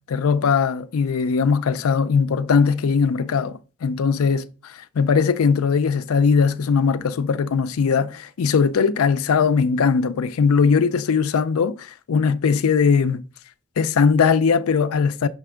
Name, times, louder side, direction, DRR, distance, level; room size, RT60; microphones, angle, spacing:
voice 1, 0.1-13.2 13.8-15.3, left 5 dB, 75° left, 0.4 m, -20 dB
5.9 x 3.4 x 4.8 m
head